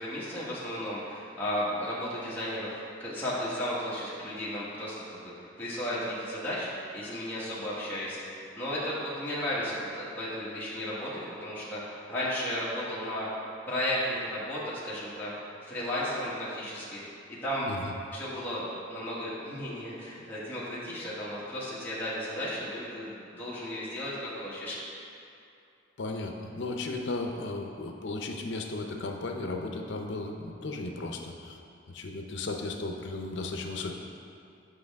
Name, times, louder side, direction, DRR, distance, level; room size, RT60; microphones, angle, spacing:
voice 1, 0.0-2.7 3.0-13.3 13.7-15.3 15.7-17.0 17.3-17.7 18.1-24.8, equal, 10° left, -10 dB, 1.4 m, -34 dB
voice 2, 26.0-31.6 31.9-33.9, left 2 dB, 70° left, 3 dB, 0.6 m, -35 dB
7.8 x 5.3 x 3.5 m, 2.6 s
head